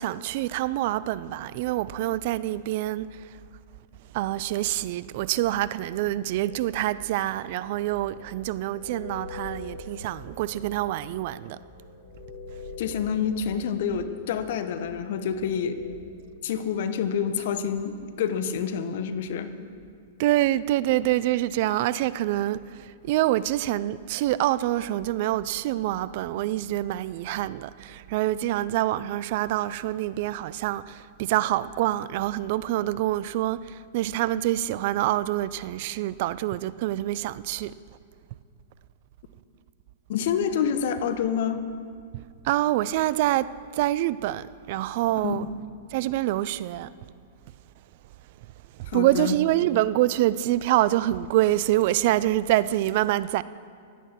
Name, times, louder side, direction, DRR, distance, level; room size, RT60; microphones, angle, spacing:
voice 1, 0.0-3.3 4.1-11.6 20.2-37.7 42.4-45.4 45.9-46.9 48.9-53.4, right 15 dB, 55° right, 0.4 m, -26 dB
sound 1, 6.4-16.0, left 3 dB, 80° left, 3.1 m, -44 dB
voice 2, 12.8-15.8 16.4-19.5 40.1-41.6 45.2-45.4 48.9-49.4, left 7 dB, 60° left, 1.1 m, -27 dB
16.0 x 11.5 x 5.9 m
hypercardioid pair, 105°, 0 cm